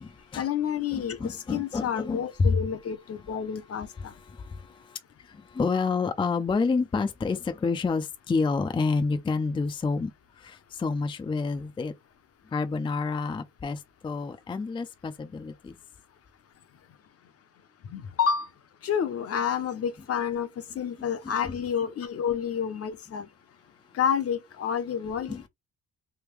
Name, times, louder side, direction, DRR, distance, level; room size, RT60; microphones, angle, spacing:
voice 1, 0.4-4.1 17.9-18.5 18.8-20.5 20.7-23.3 23.9-25.4, left 8 dB, 50° left, 0.7 m, -29 dB
voice 2, 0.9-2.6 4.3-5.0 5.2-10.1 10.4-11.9 12.5-15.7 21.2-21.5 25.3-25.5, left 4 dB, 15° left, 0.4 m, -29 dB
3.5 x 2.2 x 3.1 m
cardioid pair, 90°, 30 cm